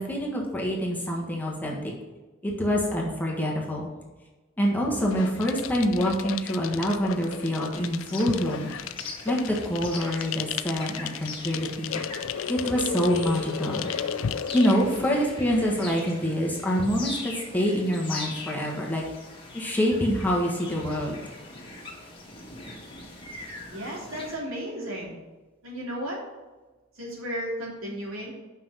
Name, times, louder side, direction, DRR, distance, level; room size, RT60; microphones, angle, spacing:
voice 1, 0.0-1.9 2.4-3.9 4.6-8.7 9.2-12.0 12.5-13.9 14.5-19.0 19.5-21.2, equal, 10° left, -2 dB, 1.4 m, -26 dB
sound 1, 4.9-15.2, left 7 dB, 70° left, 0.4 m, -34 dB
sound 2, 7.7-24.3, left 2 dB, 25° left, 1.8 m, -41 dB
voice 2, 23.7-25.1 25.6-26.2 26.9-28.3, equal, 80° right, -3 dB, 2.9 m, -34 dB
6.0 x 5.8 x 6.2 m, 1.2 s
head